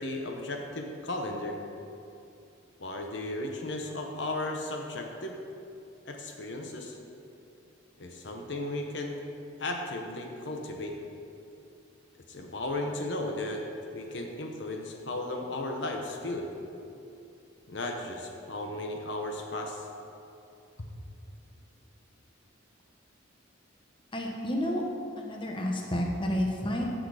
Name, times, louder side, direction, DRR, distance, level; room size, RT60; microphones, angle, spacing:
voice 1, 0.0-1.6 2.8-5.4 6.0-7.0 8.0-9.2 9.6-10.9 12.3-13.6 13.9-16.5 17.7-19.9 20.8-20.9, left 2 dB, 60° left, 2 dB, 0.9 m, -35 dB
voice 2, 24.1-24.8 25.2-26.8, equal, 25° left, 0 dB, 1.1 m, -30 dB
15.0 x 6.4 x 4.9 m, 2.7 s
head